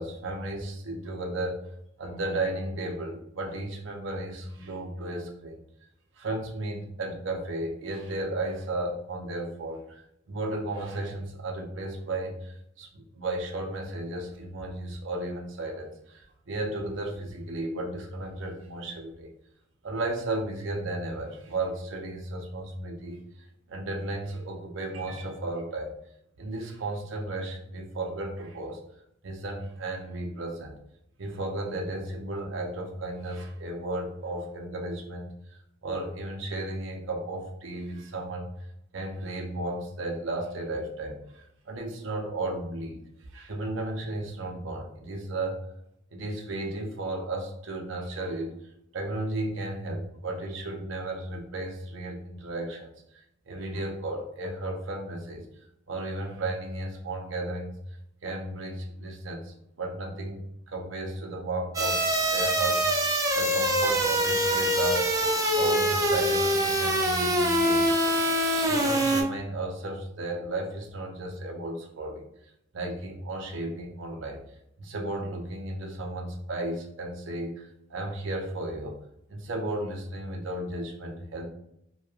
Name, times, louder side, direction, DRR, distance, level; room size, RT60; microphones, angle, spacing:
voice 1, 0.0-1.6 2.0-5.6 6.2-10.0 10.3-19.3 19.8-26.0 26.4-28.8 29.2-30.8 31.2-35.3 35.8-38.5 38.9-43.0 43.3-45.6 46.1-48.6 48.9-55.5 55.9-57.8 58.2-63.0 63.4-65.1 65.5-68.2 68.7-72.3 72.7-74.4 74.8-79.0 79.3-81.5, right 2 dB, 70° right, 1 dB, 0.6 m, -34 dB
sound 1, 61.7-69.2, right 1 dB, 15° right, 0.3 m, -24 dB
3.0 x 2.2 x 2.4 m, 0.78 s
head